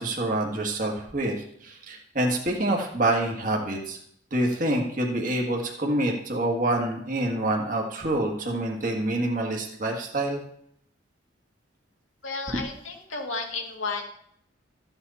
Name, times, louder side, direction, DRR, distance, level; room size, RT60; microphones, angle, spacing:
voice 1, 0.0-1.3 1.6-4.0 4.3-10.4, right 1 dB, 40° right, 1 dB, 1.6 m, -26 dB
voice 2, 12.2-14.0, left 4 dB, 80° left, 2 dB, 2.1 m, -32 dB
14.0 x 7.9 x 4.1 m, 0.70 s
head